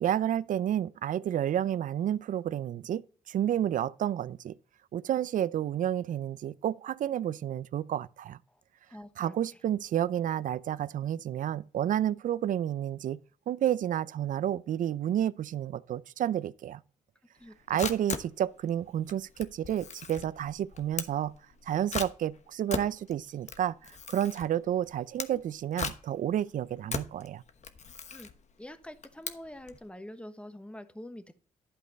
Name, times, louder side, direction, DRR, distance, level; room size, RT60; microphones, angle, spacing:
voice 1, 0.0-4.6 4.9-8.4 9.2-13.2 13.5-16.8 17.7-21.3 21.7-27.4, right 10 dB, 65° right, 0.5 m, -30 dB
voice 2, 8.9-9.4 17.4-17.9 28.1-28.3 28.6-31.3, left 1 dB, 10° left, 1.2 m, -46 dB
Camera, 17.4-29.8, left 6 dB, 50° left, 1.1 m, -39 dB
11.5 x 5.1 x 4.2 m
cardioid pair, 70°, 15 cm